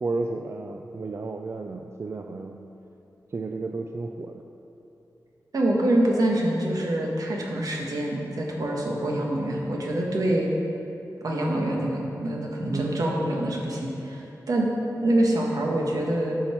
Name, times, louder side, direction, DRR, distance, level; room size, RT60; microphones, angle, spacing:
voice 1, 0.0-2.7 3.3-4.4 12.7-13.0, right 3 dB, 45° right, 4 dB, 0.4 m, -32 dB
voice 2, 5.5-10.5 11.2-14.7 15.0-16.3, right 1 dB, 65° right, -1 dB, 1.4 m, -25 dB
12.0 x 5.6 x 4.4 m, 2.9 s
wide cardioid pair, 120°, 7 cm